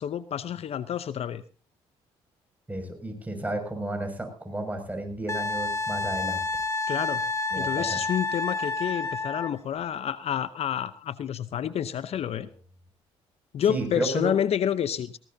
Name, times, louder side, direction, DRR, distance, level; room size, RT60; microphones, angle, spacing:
voice 1, 0.0-1.4 6.9-7.2 7.5-12.5 13.5-15.2, left 9 dB, 60° left, 14 dB, 0.8 m, -29 dB
voice 2, 2.7-6.4 7.5-8.0 13.7-14.3, right 1 dB, 15° right, 5 dB, 6.4 m, -32 dB
Wind instrument woodwind instrument, 5.3-9.5 12.2-12.3, left 3 dB, 25° left, 2.2 m, -29 dB
19.0 x 17.0 x 2.8 m, 0.38 s
supercardioid pair, 65°, 12 cm